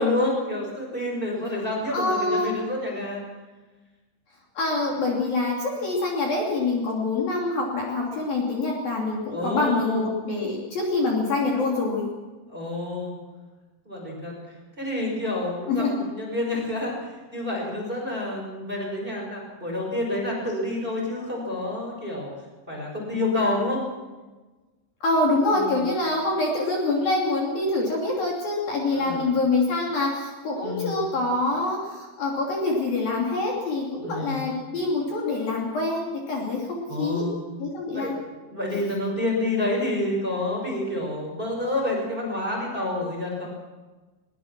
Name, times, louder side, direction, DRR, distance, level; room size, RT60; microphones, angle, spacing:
voice 1, 0.0-3.2 9.3-10.0 12.5-13.2 13.8-14.3 14.8-22.3 22.7-23.8 25.5-25.8 28.9-29.3 30.6-31.0 34.0-34.5 36.9-37.4 37.9-38.1 38.5-43.5, left 1 dB, 10° right, -1 dB, 5.2 m, -28 dB
voice 2, 1.9-2.5 4.6-12.1 15.7-15.9 25.0-37.2 37.6-38.1, left 2 dB, 50° left, -2 dB, 4.3 m, -25 dB
21.5 x 21.5 x 6.1 m, 1.2 s
omnidirectional pair, 5.9 m